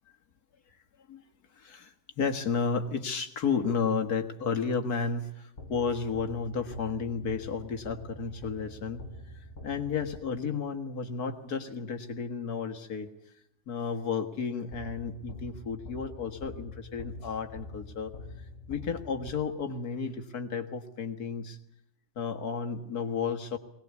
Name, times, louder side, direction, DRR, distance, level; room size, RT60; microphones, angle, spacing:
voice 1, 1.6-9.0 9.6-13.1 13.7-18.1 18.7-21.6 22.2-23.6, left 5 dB, 85° left, 5 dB, 2.2 m, -32 dB
sound 1, 5.6-10.7 14.7-19.9, left 2 dB, 55° left, 2.0 m, -46 dB
20.5 x 19.0 x 8.3 m, 0.74 s
omnidirectional pair, 1.6 m